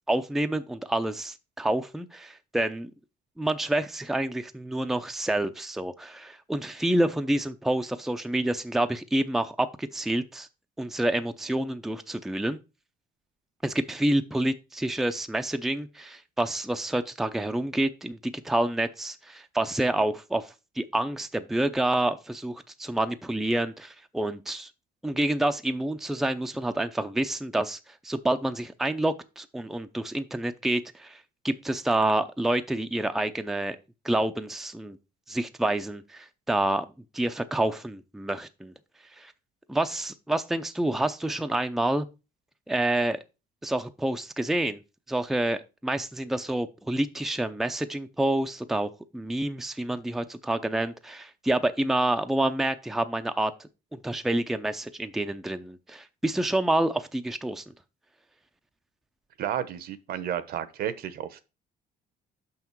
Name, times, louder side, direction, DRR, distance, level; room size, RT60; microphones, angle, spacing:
voice 1, 0.1-2.9 3.4-10.5 10.8-12.6 13.6-24.7 25.0-27.8 28.0-33.8 34.0-35.0 35.3-36.8 37.1-38.7 39.2-39.3 39.7-42.1 42.7-43.2 43.6-44.8 45.1-57.7, right 1 dB, ahead, 0.5 m, -28 dB
voice 2, 59.4-61.4, right 10 dB, 65° right, 0.9 m, -32 dB
6.2 x 5.9 x 4.6 m
cardioid pair, 110°, 17 cm